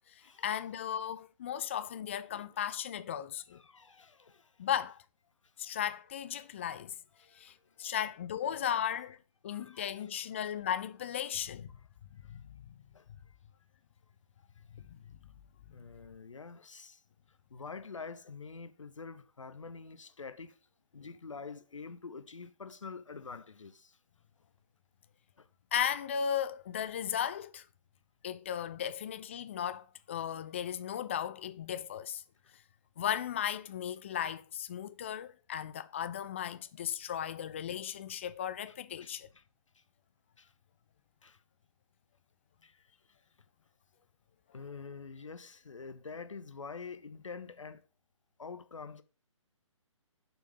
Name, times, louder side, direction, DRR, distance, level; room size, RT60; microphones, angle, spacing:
voice 1, 0.1-3.6 4.6-5.0 5.6-6.9 7.4-9.2 9.4-11.7 12.1-12.7 14.7-15.0 25.7-27.7 28.2-32.2 33.0-39.3, left 9 dB, 25° left, 0.3 m, -36 dB
voice 2, 2.3-2.7 3.5-4.5 5.6-5.8 6.6-6.7 7.2-8.0 9.0-9.2 9.4-10.2 12.2-12.4 12.9-13.4 14.8-14.9 15.7-17.0 17.3-20.6 20.9-24.0 25.4-25.5 37.1-37.2 38.7-39.4 39.7-39.8 40.4-40.5 41.2-41.4 42.6-42.8 44.5-47.8 48.4-49.0, left 5 dB, 65° left, 0.8 m, -47 dB
7.0 x 4.5 x 5.4 m
figure-of-eight pair, 130°, 17 cm